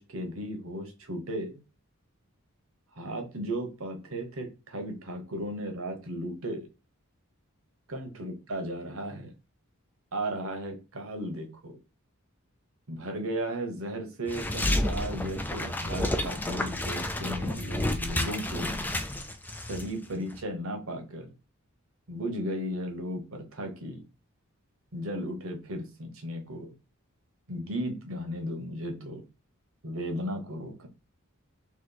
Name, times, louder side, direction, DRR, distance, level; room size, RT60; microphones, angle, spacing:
voice 1, 0.0-1.6 2.9-6.7 7.9-9.3 10.1-11.8 12.9-18.7 19.7-21.3 22.1-24.0 24.9-26.7 27.5-29.2 29.8-30.9, equal, 70° right, 4 dB, 1.1 m, -35 dB
sound 1, 14.3-19.9 20.1-20.4, left 1 dB, 10° left, 0.4 m, -30 dB
3.1 x 3.0 x 3.9 m, 0.30 s
head